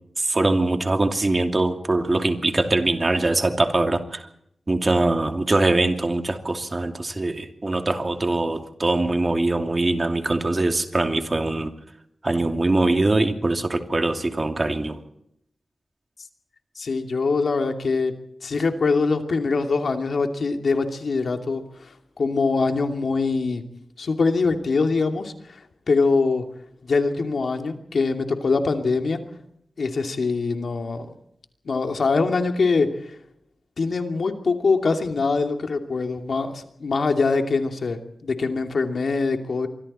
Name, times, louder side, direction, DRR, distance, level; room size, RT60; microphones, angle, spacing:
voice 1, 0.2-4.3 4.7-11.7 12.2-15.0, right 2 dB, 30° right, 5 dB, 2.7 m, -22 dB
voice 2, 16.8-18.1 18.4-23.6 24.0-26.4 26.8-29.2 29.8-31.1 31.6-33.1 33.8-39.7, left 4 dB, 70° left, 5 dB, 2.7 m, -23 dB
27.0 x 24.5 x 4.4 m, 0.74 s
wide cardioid pair, 125°, 0 cm